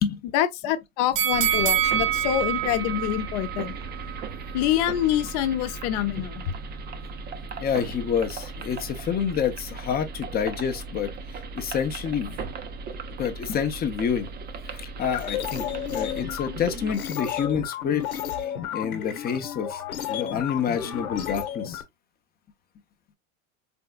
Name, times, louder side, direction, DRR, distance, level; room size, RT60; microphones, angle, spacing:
voice 1, 0.3-3.7 4.5-6.5, left 12 dB, 55° left, 0.8 m, -26 dB
sound 1, 1.2-4.3 4.7-4.8, right 11 dB, 65° right, 0.7 m, -26 dB
sound 2, 1.3-17.0, right 4 dB, 25° right, 0.5 m, -37 dB
voice 2, 7.6-11.1 11.5-12.4 13.2-14.3 14.7-15.7 15.9-18.0 18.4-19.8 20.1-21.8, left 7 dB, 25° left, 0.6 m, -28 dB
sound 3, 15.0-21.8, left 9 dB, 90° left, 0.9 m, -32 dB
4.0 x 3.5 x 2.3 m
supercardioid pair, 120°, 42 cm